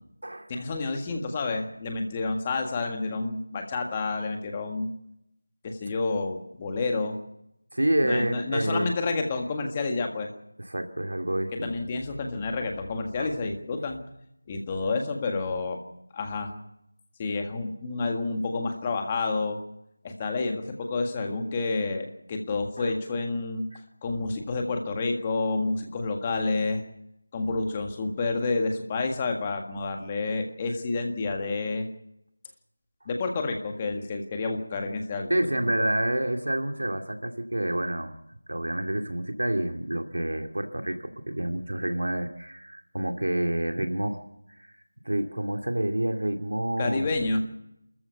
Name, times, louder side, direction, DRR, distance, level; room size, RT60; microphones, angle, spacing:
voice 1, 0.5-4.9 5.6-7.2 8.0-10.3 11.6-14.0 14.5-15.8 16.1-16.5 17.2-19.6 20.0-23.7 24.0-26.8 27.3-31.9 33.0-35.9 46.8-47.4, left 3 dB, 15° left, 4 dB, 1.7 m, -29 dB
voice 2, 7.7-8.9 10.6-11.7 13.2-13.3 22.8-22.9 23.7-23.8 35.3-38.1 38.5-44.3 44.6-44.7 45.0-47.1, right 1 dB, 85° right, 5 dB, 2.5 m, -28 dB
28.5 x 14.0 x 6.9 m, 0.82 s
figure-of-eight pair, 175°, 0 cm